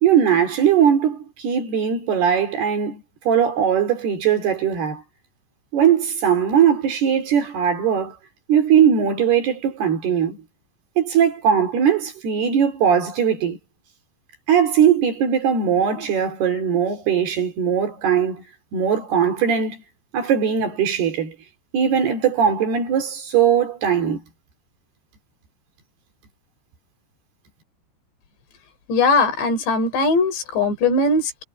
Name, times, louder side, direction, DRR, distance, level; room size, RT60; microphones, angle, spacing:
voice 1, 0.0-5.0 5.7-8.2 8.5-10.4 11.0-13.6 14.5-18.4 18.7-19.8 20.1-21.4 21.7-24.2, right 8 dB, 65° right, 4.8 m, -19 dB
voice 2, 28.9-31.4, left 3 dB, 75° left, 7.1 m, -20 dB
omnidirectional pair, 5.1 m